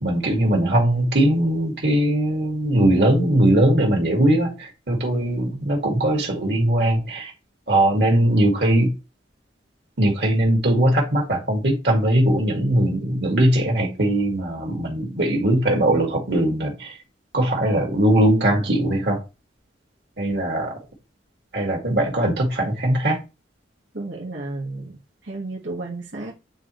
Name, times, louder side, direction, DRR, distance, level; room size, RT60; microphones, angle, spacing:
voice 1, 0.0-7.3 7.7-8.9 10.0-17.0 17.3-19.2 20.2-20.7 21.5-23.2, right 1 dB, 60° right, 2.1 m, -20 dB
voice 2, 23.9-26.3, right 2 dB, 85° right, 1.6 m, -33 dB
8.7 x 3.9 x 3.1 m
head